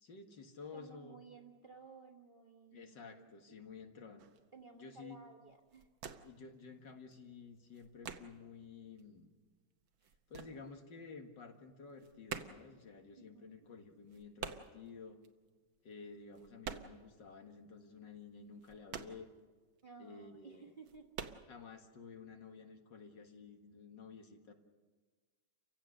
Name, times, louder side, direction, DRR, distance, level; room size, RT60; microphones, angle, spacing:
voice 1, 0.0-1.2 2.7-4.3 4.7-5.2 6.2-9.3 10.3-15.2 15.8-19.3 20.0-20.7 21.5-24.5, left 5 dB, 60° left, 4 dB, 2.3 m, -52 dB
voice 2, 0.7-3.6 4.5-5.9 13.2-13.7 19.8-21.1, right 5 dB, 30° right, 0 dB, 1.4 m, -57 dB
sound 1, 4.2-4.5 5.0-5.2 5.5-6.5 6.7-8.6 9.0-11.2 11.5-17.2 17.5-17.6 18.0-19.9 20.3-20.4 20.8-21.4, right 7 dB, 75° right, 1.8 m, -48 dB
29.5 x 16.0 x 6.6 m, 1.4 s
omnidirectional pair, 2.2 m